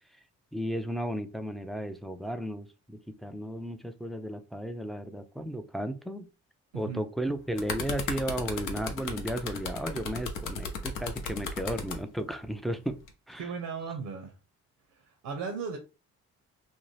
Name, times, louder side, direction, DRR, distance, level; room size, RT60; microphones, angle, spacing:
voice 1, 0.5-6.3 6.7-13.0 13.3-13.5, equal, ahead, 8 dB, 0.4 m, -34 dB
sound 1, 7.3-12.0 12.9-13.1, left 5 dB, 75° left, 0.7 m, -35 dB
voice 2, 13.4-14.3 15.0-15.8, right 5 dB, 70° right, 4 dB, 0.7 m, -36 dB
2.6 x 2.0 x 3.1 m, 0.31 s
supercardioid pair, 60°, 32 cm